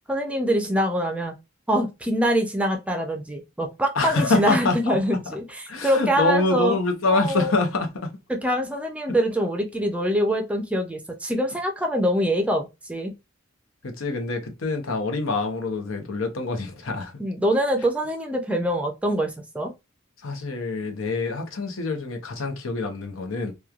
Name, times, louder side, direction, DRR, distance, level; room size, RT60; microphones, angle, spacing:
voice 1, 0.1-1.3 1.7-6.7 7.1-7.5 8.3-13.1 17.2-19.7, equal, 5° right, 0.4 m, -24 dB
voice 2, 3.9-5.0 5.7-8.1 13.8-17.2 20.2-23.5, left 3 dB, 80° left, 0.7 m, -25 dB
3.0 x 2.2 x 2.3 m
head